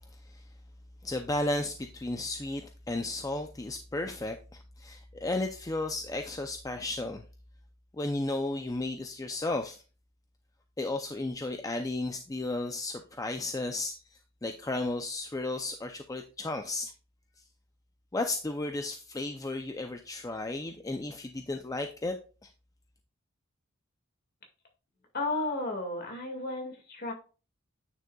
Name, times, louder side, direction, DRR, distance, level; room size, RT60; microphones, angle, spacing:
voice 1, 1.0-7.2 8.0-9.8 10.8-16.9 18.1-22.2, left 2 dB, 15° left, 6 dB, 0.4 m, -34 dB
voice 2, 25.1-27.1, left 2 dB, 50° left, 2 dB, 1.9 m, -33 dB
9.1 x 6.4 x 2.3 m, 0.35 s
head